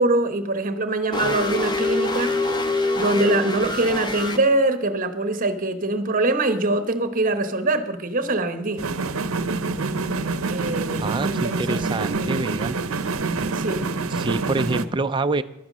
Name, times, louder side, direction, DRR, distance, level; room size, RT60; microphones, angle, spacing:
voice 1, 0.0-2.4 3.0-8.8 10.5-11.8 12.1-12.4 13.4-13.9, right 2 dB, 40° right, 10 dB, 1.0 m, -23 dB
sound 1, 1.1-4.4, left 2 dB, 20° left, 1.0 m, -24 dB
sound 2, 8.8-14.9, right 3 dB, 75° right, 0.7 m, -26 dB
voice 2, 11.0-12.8 14.1-15.4, right 3 dB, 20° right, 10 dB, 0.4 m, -26 dB
12.0 x 9.5 x 6.2 m, 0.96 s
head